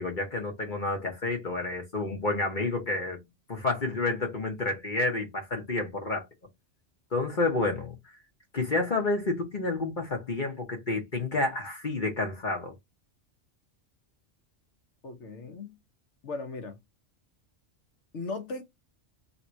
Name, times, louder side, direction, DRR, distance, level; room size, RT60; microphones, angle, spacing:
voice 1, 0.0-3.2 3.5-6.3 7.1-8.2 8.5-12.7, left 3 dB, 45° left, 1.1 m, -30 dB
voice 2, 15.0-15.8 16.2-16.8 18.1-18.6, left 3 dB, 70° left, 1.3 m, -37 dB
3.5 x 2.7 x 4.4 m
omnidirectional pair, 1.3 m